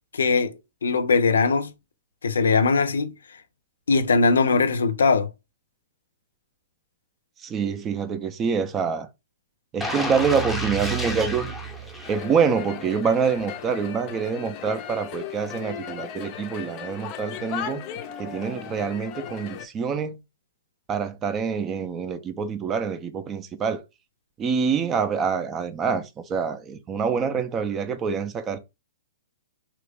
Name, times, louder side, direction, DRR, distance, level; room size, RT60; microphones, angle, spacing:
voice 1, 0.1-0.5 0.8-1.7 2.2-3.1 3.9-5.3, left 4 dB, 85° left, 0.5 m, -20 dB
voice 2, 7.4-9.1 9.7-11.5 12.1-17.8 18.2-20.2 20.9-23.8 24.4-28.6, right 6 dB, 25° right, 0.4 m, -26 dB
sound 1, 9.8-12.7 13.2-13.3, right 1 dB, 5° left, 0.7 m, -30 dB
sound 2, 12.0-19.7, left 9 dB, 35° left, 0.5 m, -37 dB
2.9 x 2.4 x 3.4 m
hypercardioid pair, 125°, 0 cm